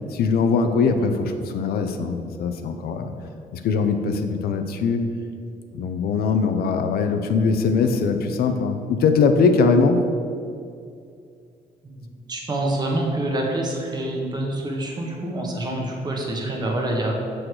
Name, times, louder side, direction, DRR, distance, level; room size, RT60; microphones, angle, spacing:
voice 1, 0.1-3.1 3.5-5.0 5.7-10.0, left 4 dB, 80° left, 7 dB, 0.6 m, -21 dB
voice 2, 11.8-17.1, right 1 dB, 25° right, -1 dB, 1.2 m, -26 dB
6.4 x 6.3 x 4.7 m, 2.4 s
cardioid pair, 160°, 16 cm